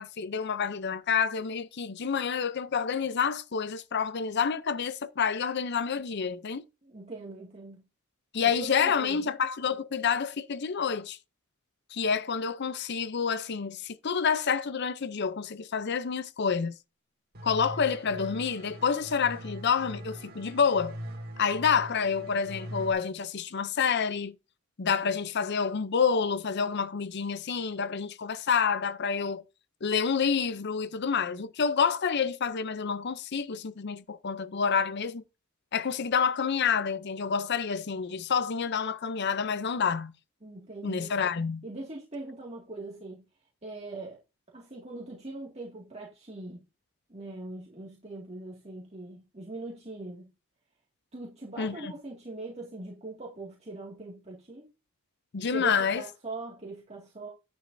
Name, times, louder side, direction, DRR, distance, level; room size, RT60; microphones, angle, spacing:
voice 1, 0.0-6.6 8.3-11.2 11.9-16.8 17.4-21.0 21.4-24.4 24.8-29.4 29.8-35.2 35.7-40.1 40.8-41.6 51.6-51.9 55.3-56.0, left 6 dB, 55° left, 0.6 m, -28 dB
voice 2, 6.8-7.8 8.4-9.2 40.4-41.1 41.6-43.2 43.6-44.2 44.5-46.6 47.1-50.3 51.1-54.7 55.5-57.3, right 2 dB, 30° right, 2.1 m, -41 dB
sound 1, 17.3-22.9, right 1 dB, 50° right, 2.3 m, -42 dB
10.5 x 9.7 x 2.7 m
head